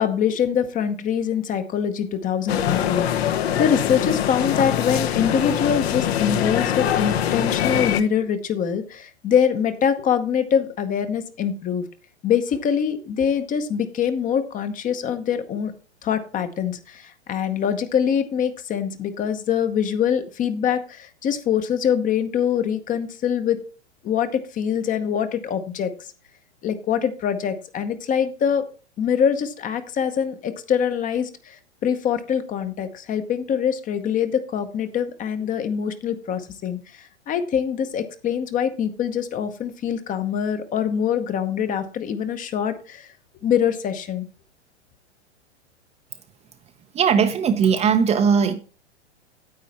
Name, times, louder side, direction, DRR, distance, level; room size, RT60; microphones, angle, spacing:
voice 1, 0.0-11.9 12.2-15.7 16.0-23.6 24.0-26.1 26.6-28.6 29.0-43.1 43.4-44.3, left 8 dB, 25° left, 0.9 m, -24 dB
sound 1, 2.5-8.0, left 10 dB, 60° left, 1.1 m, -23 dB
voice 2, 46.9-48.5, right 6 dB, 20° right, 0.7 m, -19 dB
9.6 x 8.2 x 4.3 m
hypercardioid pair, 110°, 34 cm